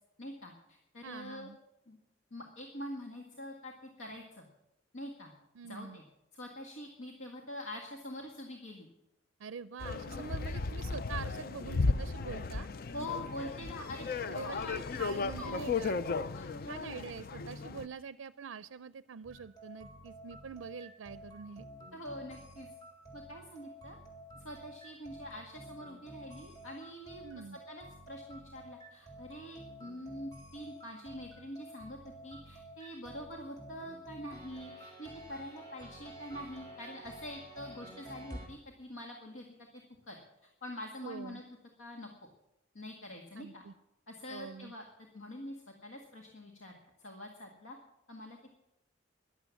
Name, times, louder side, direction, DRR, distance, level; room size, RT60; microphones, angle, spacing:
voice 1, 0.2-1.5 1.9-2.0 2.3-4.5 4.9-5.3 5.6-6.0 6.3-8.9 12.9-14.1 14.3-15.8 16.4-16.5 21.9-22.7 23.1-24.0 24.4-27.2 27.5-32.0 32.2-39.5 39.7-41.4 41.8-42.1 42.7-43.6 44.1-44.9 45.1-45.6 45.8-47.8 48.1-48.5, left 1 dB, 85° left, 2 dB, 1.8 m, -45 dB
voice 2, 1.0-1.6 5.6-6.0 9.4-12.7 14.3-14.6 15.0-16.0 16.7-21.7 27.2-27.6 41.0-41.4 43.4-43.7 44.3-44.7, right 6 dB, 75° right, 15 dB, 0.4 m, -45 dB
sound 1, 9.8-17.9, left 4 dB, 50° left, 0.5 m, -35 dB
sound 2, 19.2-38.5, right 1 dB, 20° left, 3.6 m, -51 dB
14.5 x 11.0 x 7.2 m, 0.87 s
head